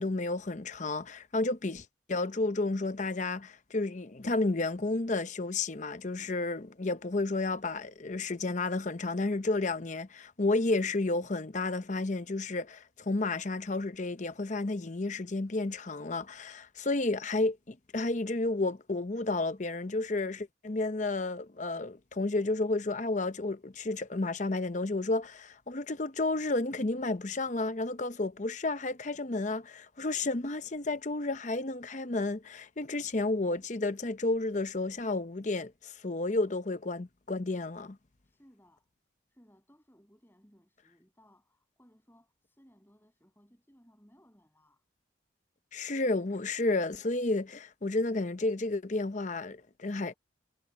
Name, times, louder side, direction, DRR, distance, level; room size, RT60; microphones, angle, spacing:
voice 1, 0.0-38.0 45.7-50.1, left 2 dB, 40° left, 0.7 m, -31 dB
voice 2, 38.2-38.9 39.3-44.8 49.9-50.2, equal, 10° left, 7.6 m, -63 dB
head